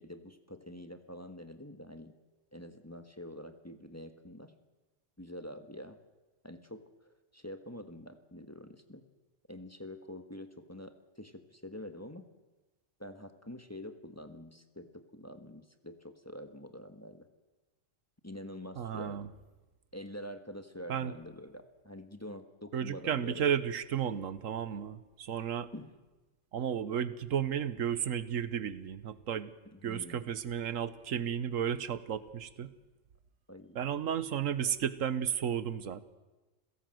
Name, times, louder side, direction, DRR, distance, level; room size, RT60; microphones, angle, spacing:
voice 1, 0.0-2.1 2.5-4.5 5.2-6.0 6.4-6.9 7.3-9.0 9.5-12.2 13.0-17.3 18.2-19.3 19.9-23.4 25.7-26.0 29.7-30.2 33.5-33.8, left 1 dB, 10° left, 7 dB, 1.3 m, -46 dB
voice 2, 18.8-19.3 20.9-21.1 22.7-25.7 26.5-29.5 29.8-32.7 33.7-36.0, right 8 dB, 85° right, 15 dB, 1.3 m, -33 dB
28.0 x 17.0 x 7.8 m, 1.2 s
omnidirectional pair, 1.3 m